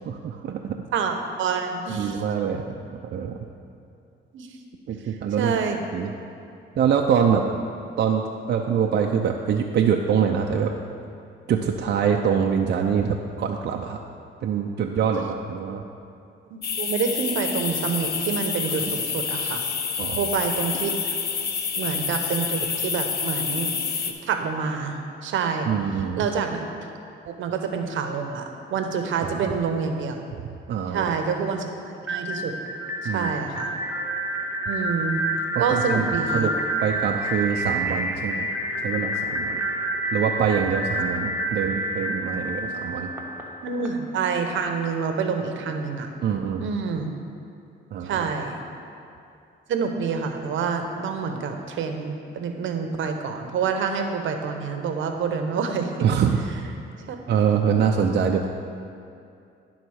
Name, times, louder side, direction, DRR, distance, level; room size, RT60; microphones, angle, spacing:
voice 1, 0.0-0.8 2.0-2.7 3.1-3.4 4.9-5.5 5.9-6.1 6.8-7.4 8.0-10.7 11.5-14.0 14.4-15.8 20.0-20.3 25.7-26.2 29.2-29.6 30.7-31.1 33.0-33.3 35.5-36.5 36.8-38.5 38.8-39.6 40.1-43.1 46.2-46.7 47.9-48.2 56.0-56.4 57.3-58.5, right 7 dB, 55° right, 2 dB, 0.5 m, -24 dB
voice 2, 0.9-2.2 4.3-4.5 5.4-5.8 16.5-19.6 20.1-20.9 21.8-23.8 24.2-25.7 26.2-26.7 27.3-28.4 28.7-30.2 30.9-31.7 32.1-32.5 33.0-33.8 34.7-35.2 35.6-36.5 42.6-43.1 43.6-46.1 46.6-47.1 48.0-48.6 49.7-56.1 57.1-57.2, right 5 dB, 75° right, 5 dB, 0.9 m, -27 dB
sound 1, 16.6-24.1, left 6 dB, 55° left, 0.7 m, -28 dB
sound 2, 32.0-43.9, right 1 dB, 10° right, 1.2 m, -28 dB
11.0 x 3.9 x 6.3 m, 2.5 s
cardioid pair, 90°, 20 cm